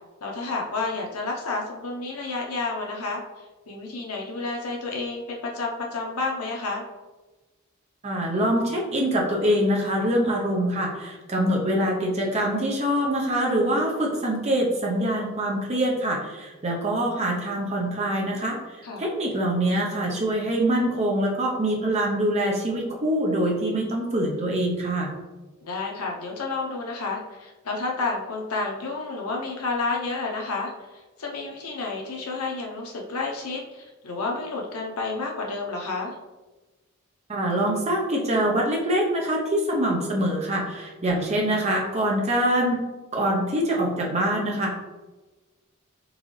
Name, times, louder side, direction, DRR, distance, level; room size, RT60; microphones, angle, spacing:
voice 1, 0.2-3.2 3.7-6.8 18.8-19.1 25.6-36.1, left 3 dB, 90° left, 0 dB, 0.8 m, -30 dB
voice 2, 8.0-25.1 37.3-42.8 43.1-44.8, right 1 dB, 30° right, -2 dB, 0.8 m, -24 dB
4.0 x 3.9 x 3.2 m, 1.2 s
head